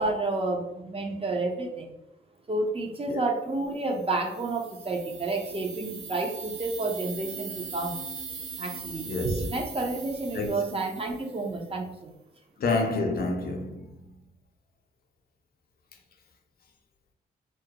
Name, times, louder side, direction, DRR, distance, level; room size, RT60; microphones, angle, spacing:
voice 1, 0.0-1.9 2.5-8.0 8.6-12.1, right 2 dB, 30° right, 0.6 m, -30 dB
sound 1, 3.8-11.8, right 4 dB, 80° right, 0.5 m, -41 dB
voice 2, 9.1-9.5 10.3-10.6 12.6-14.0, left 3 dB, 50° left, 0.5 m, -28 dB
2.3 x 2.0 x 2.8 m
supercardioid pair, 45°, 20 cm